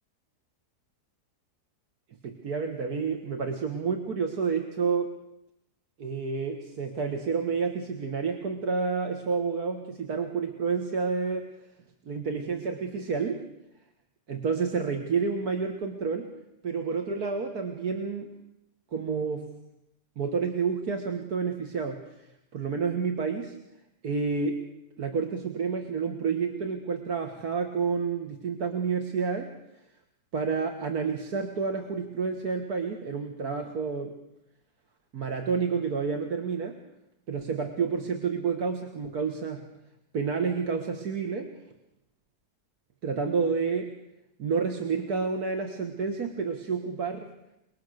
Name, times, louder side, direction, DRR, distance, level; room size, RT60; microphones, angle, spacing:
voice 1, 2.2-5.1 6.0-11.5 12.1-13.4 14.3-16.3 16.6-18.3 18.9-19.5 20.2-22.3 22.5-23.6 24.0-24.6 25.0-29.5 30.3-34.2 35.1-36.8 37.3-39.6 40.1-41.5 43.0-43.9 44.4-47.3, right 5 dB, 65° right, 4 dB, 2.1 m, -29 dB
29.0 x 20.5 x 6.6 m, 0.85 s
omnidirectional pair, 1.8 m